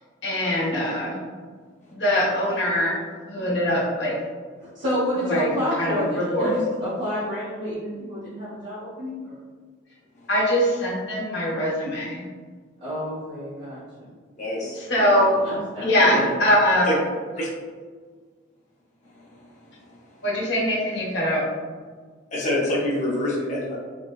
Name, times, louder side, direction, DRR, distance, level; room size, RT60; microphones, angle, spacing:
voice 1, 0.2-1.2 1.9-3.0 3.3-4.1 5.2-5.5 5.8-6.5 10.3-12.3 14.9-15.4 15.8-16.9 20.2-21.4, equal, 65° left, -6 dB, 1.0 m, -22 dB
voice 2, 4.6-9.4 12.8-14.1 15.4-16.3, equal, 70° right, -13 dB, 1.1 m, -29 dB
voice 3, 14.4-14.9 16.9-17.0 17.4-17.5 19.1-20.0 22.3-23.8, left 1 dB, 40° left, -5 dB, 0.7 m, -27 dB
3.8 x 2.1 x 2.3 m, 1.5 s
head